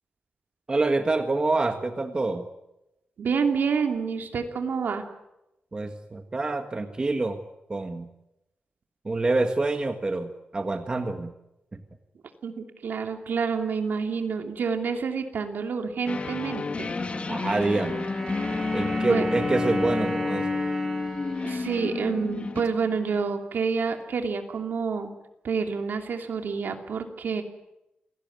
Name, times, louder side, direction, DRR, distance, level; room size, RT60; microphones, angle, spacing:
voice 1, 0.7-2.5 5.7-7.4 7.7-8.1 9.0-11.3 11.7-11.8 17.3-18.1 18.7-20.6, right 2 dB, 25° right, 6 dB, 1.6 m, -26 dB
voice 2, 3.2-5.1 12.4-16.9 19.1-19.2 21.4-25.1 25.4-27.4, right 5 dB, 75° right, 5 dB, 2.8 m, -28 dB
sound 1, 16.1-22.6, left 4 dB, 40° left, 1.6 m, -30 dB
sound 2, 16.9-23.3, right 1 dB, 5° right, 6.0 m, -35 dB
28.0 x 17.5 x 9.5 m, 0.91 s
wide cardioid pair, 155°, 3 cm